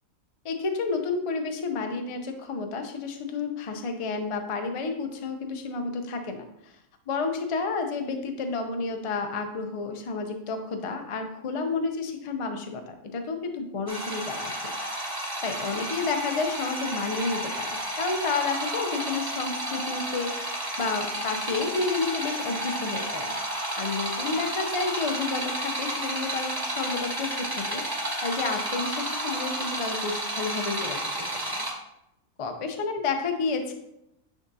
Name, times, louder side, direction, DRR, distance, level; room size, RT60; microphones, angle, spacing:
voice 1, 0.4-6.8 7.1-15.0 15.4-31.6 32.4-33.7, left 4 dB, 40° left, 5 dB, 0.4 m, -31 dB
sound 1, 13.9-31.7, right 1 dB, 15° right, 1.2 m, -31 dB
9.7 x 3.6 x 2.7 m, 0.81 s
omnidirectional pair, 1.4 m